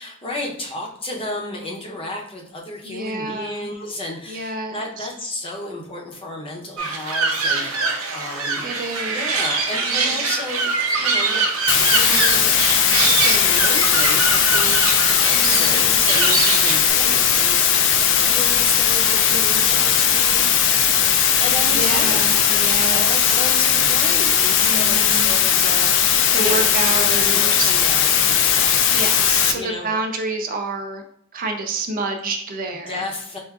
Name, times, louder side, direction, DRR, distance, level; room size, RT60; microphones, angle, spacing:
voice 1, 0.0-8.7 9.1-20.5 21.4-22.3 22.9-28.9 29.5-30.0 32.7-33.4, left 2 dB, 25° left, -1 dB, 0.6 m, -32 dB
voice 2, 2.8-3.7 4.3-5.1 8.6-9.3 10.0-10.3 15.3-16.0 21.7-23.4 24.6-25.4 26.3-27.7 28.9-31.0 31.3-33.0, right 2 dB, 40° right, 4 dB, 0.4 m, -28 dB
sound 1, 6.8-16.9, right 4 dB, 90° right, 0.6 m, -23 dB
sound 2, 11.7-29.5, left 8 dB, 60° left, 0.3 m, -18 dB
4.5 x 2.4 x 2.4 m, 0.74 s
head